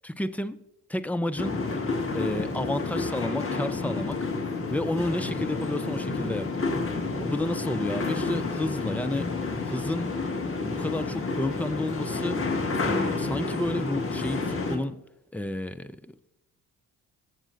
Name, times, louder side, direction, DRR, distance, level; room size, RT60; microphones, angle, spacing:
voice 1, 0.0-0.6 0.9-1.6 2.1-4.2 4.7-6.5 7.2-9.3 9.6-10.1 10.6-12.5 12.8-15.0 15.3-16.4, left 1 dB, 5° left, 0.5 m, -31 dB
sound 1, 1.4-14.8, left 3 dB, 30° left, 2.0 m, -30 dB
21.0 x 7.3 x 2.7 m
figure-of-eight pair, 45°, 43 cm